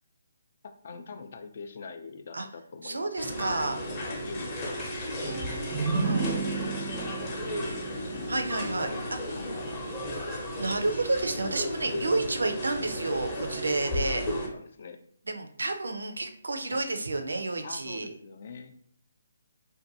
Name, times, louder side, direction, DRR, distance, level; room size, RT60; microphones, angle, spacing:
voice 1, 0.6-4.7 5.4-5.8 6.3-8.3 9.0-9.9 11.4-12.2 13.8-15.0 16.7-16.8 17.6-18.7, left 4 dB, 50° left, 6 dB, 0.3 m, -44 dB
voice 2, 2.8-3.8 6.0-6.3 8.3-9.3 10.6-14.2 15.3-18.1, right 2 dB, 85° right, 6 dB, 0.5 m, -30 dB
sound 1, 3.2-14.5, equal, 25° left, 0.7 m, -34 dB
sound 2, 5.2-8.9, right 4 dB, 15° right, 0.4 m, -33 dB
2.5 x 2.2 x 2.6 m, 0.66 s
hypercardioid pair, 155°, 0 cm